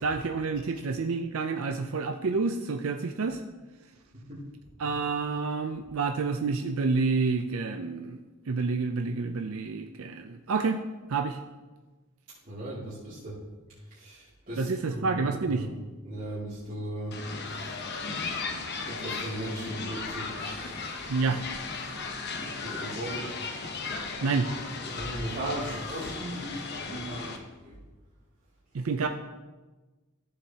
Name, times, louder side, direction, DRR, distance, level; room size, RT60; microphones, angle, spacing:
voice 1, 0.0-3.4 4.8-8.2 8.5-10.8 11.1-11.4 14.6-15.7 21.1-21.4 24.2-24.5 28.7-29.1, right 4 dB, 75° right, 6 dB, 0.5 m, -29 dB
voice 2, 4.1-4.5 4.8-4.9 12.5-13.4 13.9-15.7 16.0-17.3 18.9-20.8 22.4-23.4 24.8-27.8, right 1 dB, 40° right, -12 dB, 2.4 m, -37 dB
sound 1, 17.1-27.4, left 4 dB, 50° left, 0.9 m, -36 dB
14.0 x 7.2 x 2.8 m, 1.2 s
head